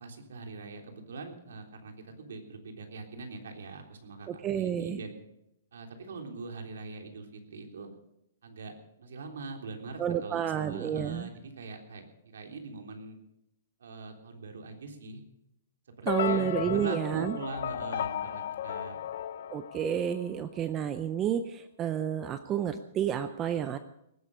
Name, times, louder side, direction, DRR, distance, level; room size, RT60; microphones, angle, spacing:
voice 1, 0.0-5.1 5.7-7.9 8.4-13.2 13.8-15.2 16.0-19.1 19.3-19.5, right 3 dB, 90° right, 3 dB, 3.5 m, -43 dB
voice 2, 4.3-5.0 10.0-11.3 16.1-17.4 19.5-23.8, right 9 dB, 15° right, 11 dB, 0.5 m, -30 dB
sound 1, 16.1-20.4, left 10 dB, 50° left, 0.5 m, -34 dB
19.0 x 11.5 x 5.5 m, 0.80 s
hypercardioid pair, 180°, 0 cm